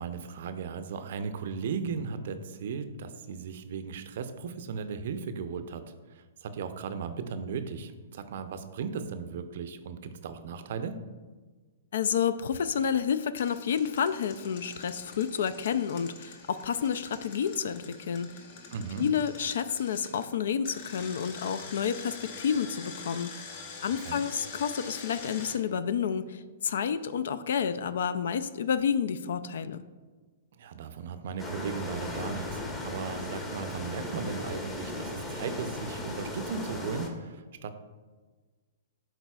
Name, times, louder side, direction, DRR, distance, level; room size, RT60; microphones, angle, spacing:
voice 1, 0.0-5.8 6.1-11.0 18.7-19.1 24.0-24.2 30.6-37.7, right 6 dB, 60° right, 9 dB, 0.5 m, -36 dB
voice 2, 11.9-18.3 19.0-23.3 23.8-29.8, left 7 dB, 65° left, 14 dB, 0.3 m, -30 dB
Engine, 13.4-20.2 20.6-25.6, left 5 dB, 50° left, 0.8 m, -45 dB
sound 1, 31.4-37.1, left 2 dB, 20° left, 0.9 m, -37 dB
11.0 x 4.0 x 2.3 m, 1.4 s
hypercardioid pair, 115°, 0 cm